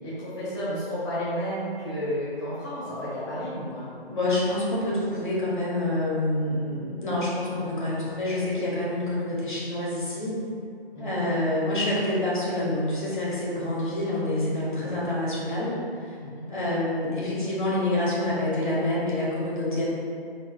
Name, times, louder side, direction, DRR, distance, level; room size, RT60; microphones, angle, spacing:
voice 1, 0.0-3.9 10.9-11.2 14.8-15.0 16.2-16.5, equal, 25° left, -12 dB, 1.0 m, -32 dB
voice 2, 4.0-10.3 11.0-15.7 16.0-16.2 16.5-19.8, left 1 dB, 50° left, -7 dB, 1.2 m, -27 dB
4.3 x 3.9 x 2.3 m, 2.3 s
figure-of-eight pair, 155°, 31 cm